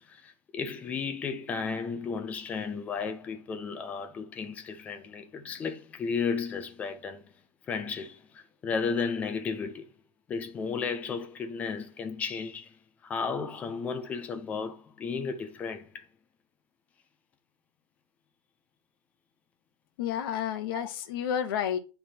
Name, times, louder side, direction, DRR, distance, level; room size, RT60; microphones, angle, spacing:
voice 1, 0.0-7.3 7.7-9.9 10.3-16.1 20.7-20.8, left 5 dB, 10° left, 0.3 m, -34 dB
voice 2, 20.0-21.8, left 9 dB, 40° left, 0.8 m, -30 dB
9.4 x 3.4 x 4.2 m
supercardioid pair, 170°, 18 cm